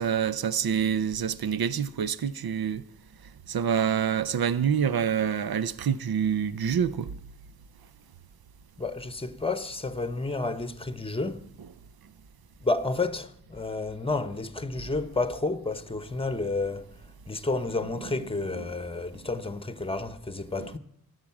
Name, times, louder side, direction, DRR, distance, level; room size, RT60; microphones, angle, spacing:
voice 1, 0.0-2.8 3.5-7.1 20.6-20.8, right 8 dB, 75° right, 0.6 m, -27 dB
voice 2, 8.8-11.5 12.6-16.9 17.3-20.8, left 3 dB, 15° left, 1.0 m, -30 dB
13.5 x 9.6 x 7.2 m
wide cardioid pair, 75°, 37 cm